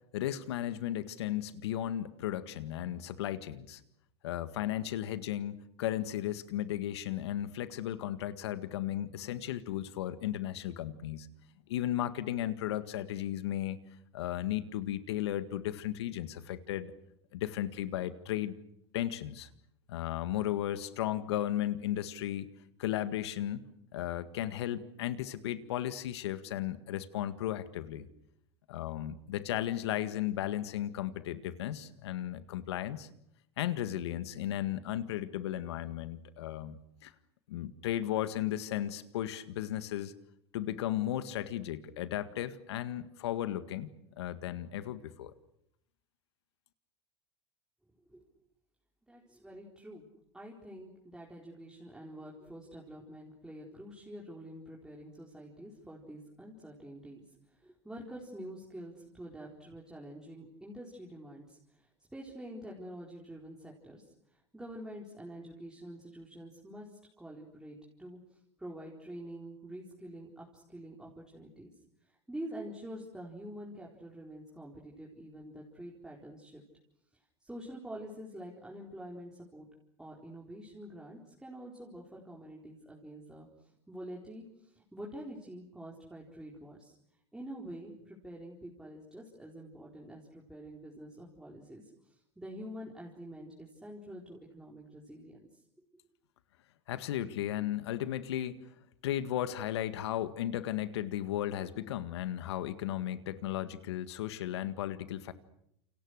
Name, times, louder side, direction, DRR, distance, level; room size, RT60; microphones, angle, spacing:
voice 1, 0.1-3.8 4.2-11.3 11.7-13.8 14.1-16.9 17.3-18.6 18.9-19.5 19.9-22.5 22.8-23.6 23.9-28.1 28.7-33.1 33.6-37.1 37.5-40.1 40.5-45.3 96.9-98.6 99.0-105.3, left 12 dB, 75° left, 12 dB, 1.8 m, -35 dB
voice 2, 49.1-50.1 50.3-57.2 57.6-64.0 64.3-71.7 72.1-76.6 77.4-79.7 80.0-86.9 87.3-95.5, right 1 dB, 5° right, -3 dB, 4.4 m, -47 dB
28.5 x 27.0 x 6.6 m, 0.77 s
hypercardioid pair, 105°, 14 cm